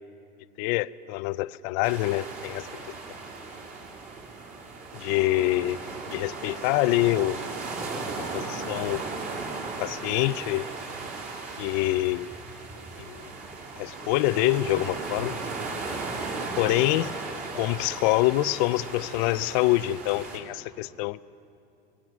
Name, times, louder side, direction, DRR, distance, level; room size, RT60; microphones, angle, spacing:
voice 1, 0.6-2.7 4.9-5.8 6.1-7.4 8.3-9.0 9.8-10.7 11.6-12.3 13.1-13.3 13.8-15.4 16.6-17.1 17.5-21.2, left 17 dB, 50° left, 17 dB, 0.5 m, -25 dB
sound 1, 1.8-20.4, right 3 dB, 25° right, 3.4 m, -36 dB
28.5 x 22.0 x 6.1 m, 2.7 s
supercardioid pair, 160°, 30 cm